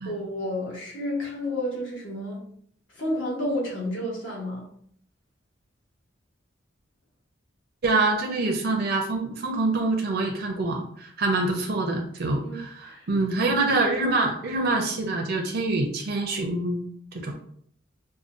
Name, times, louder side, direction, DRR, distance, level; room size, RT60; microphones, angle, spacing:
voice 1, 0.0-2.4 2.9-4.7 12.4-13.1 13.5-13.7, left 1 dB, 80° left, -2 dB, 1.2 m, -31 dB
voice 2, 7.8-16.8 17.1-17.3, right 2 dB, 55° right, 2 dB, 0.5 m, -25 dB
4.7 x 2.2 x 2.5 m, 0.62 s
head